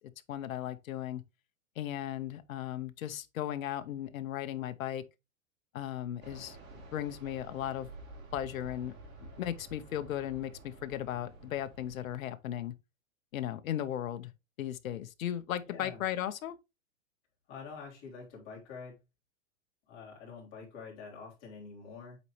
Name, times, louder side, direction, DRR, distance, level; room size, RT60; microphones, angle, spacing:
voice 1, 0.3-1.2 1.8-5.0 5.7-6.6 6.9-7.9 8.3-8.9 9.4-12.7 13.3-14.3 14.6-16.6, left 11 dB, 85° left, 0.8 m, -36 dB
Fixed-wing aircraft airplane, 6.2-12.2, right 2 dB, 25° right, 2.2 m, -50 dB
voice 2, 15.6-16.0 17.5-19.0 19.9-22.2, left 5 dB, 30° left, 3.3 m, -46 dB
8.1 x 4.1 x 3.1 m
hypercardioid pair, 155°, 40 cm